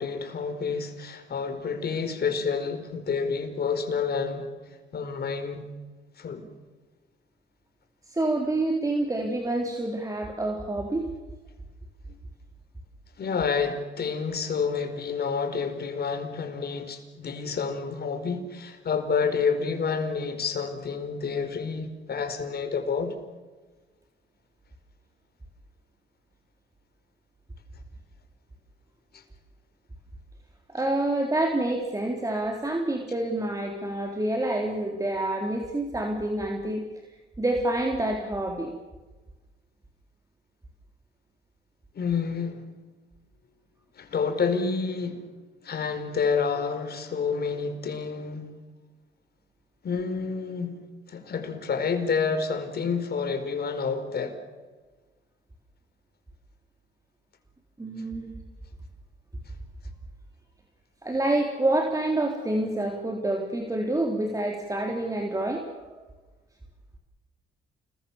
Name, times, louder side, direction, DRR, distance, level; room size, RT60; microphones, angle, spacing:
voice 1, 0.0-4.5 4.9-5.7 6.2-6.4 13.2-23.1 29.1-29.2 41.9-42.6 43.9-45.2 45.6-48.5 49.8-54.4, left 5 dB, 55° left, 4.8 m, -29 dB
voice 2, 8.1-11.1 30.7-36.9 37.4-38.7 57.8-58.4 61.0-65.9, right 1 dB, 15° right, 3.8 m, -27 dB
29.0 x 21.5 x 7.2 m
cardioid pair, 90°, 20 cm